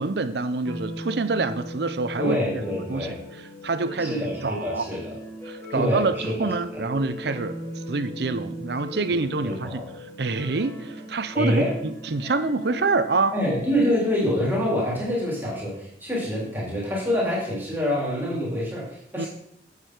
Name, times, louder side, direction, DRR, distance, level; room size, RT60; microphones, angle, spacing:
voice 1, 0.0-3.1 3.6-4.1 4.4-4.9 5.5-7.6 7.9-9.8 10.2-13.3 19.2-19.3, right 3 dB, 60° right, 12 dB, 0.6 m, -26 dB
sound 1, 0.6-13.9, equal, 15° left, 1.7 m, -38 dB
voice 2, 2.2-3.1 4.0-5.1 5.7-6.5 6.7-6.8 9.0-9.2 9.4-9.9 11.3-11.7 13.3-19.3, left 1 dB, 10° right, -6 dB, 3.3 m, -26 dB
8.4 x 8.0 x 4.6 m, 0.70 s
head